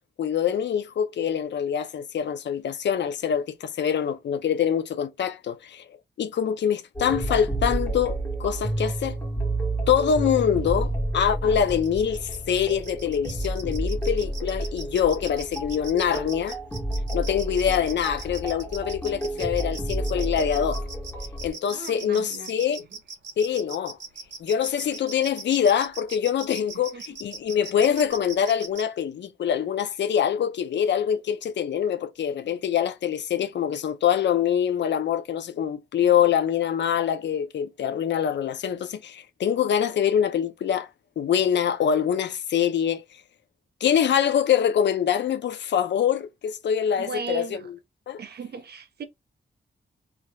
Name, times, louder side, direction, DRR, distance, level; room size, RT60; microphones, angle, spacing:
voice 1, 0.2-5.8 6.2-9.2 9.9-16.6 17.1-20.8 21.4-22.8 23.4-24.0 24.4-40.9 41.2-43.0 43.8-47.5 48.1-48.2, left 8 dB, 80° left, 0.5 m, -24 dB
sound 1, 7.0-21.5, right 1 dB, 15° left, 1.4 m, -30 dB
sound 2, 11.7-28.8, right 5 dB, 85° right, 1.3 m, -39 dB
voice 2, 21.7-22.5 26.9-27.0 46.9-47.7 48.2-49.0, right 4 dB, 65° right, 0.8 m, -36 dB
3.4 x 2.8 x 2.3 m
wide cardioid pair, 150°, 18 cm